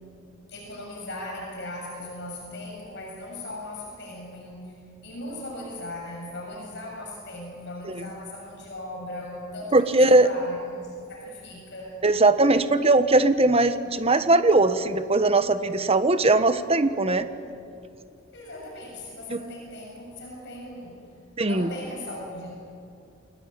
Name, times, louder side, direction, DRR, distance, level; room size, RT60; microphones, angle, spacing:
voice 1, 0.5-4.8 5.0-12.0 18.3-21.1 21.4-22.5, left 1 dB, 60° left, -1 dB, 6.8 m, -38 dB
voice 2, 9.7-10.3 12.0-17.3 19.3-19.4 21.4-21.7, right 2 dB, 30° right, 10 dB, 1.1 m, -20 dB
29.0 x 20.0 x 9.0 m, 2.5 s
head